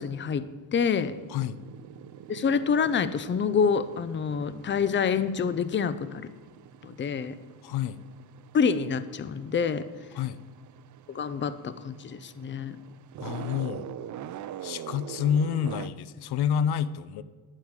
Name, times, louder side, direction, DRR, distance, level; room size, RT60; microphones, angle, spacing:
voice 1, 0.0-1.2 2.3-6.3 6.8-7.4 8.5-9.8 11.1-12.8, left 6 dB, 30° left, 15 dB, 0.6 m, -27 dB
sound 1, 0.9-15.9, right 11 dB, 45° right, 0.6 m, -44 dB
voice 2, 7.6-8.0 10.1-10.4 13.2-13.9 14.6-17.2, left 8 dB, 65° left, 16 dB, 0.7 m, -28 dB
9.5 x 6.6 x 8.8 m, 1.4 s
cardioid pair, 90°, 41 cm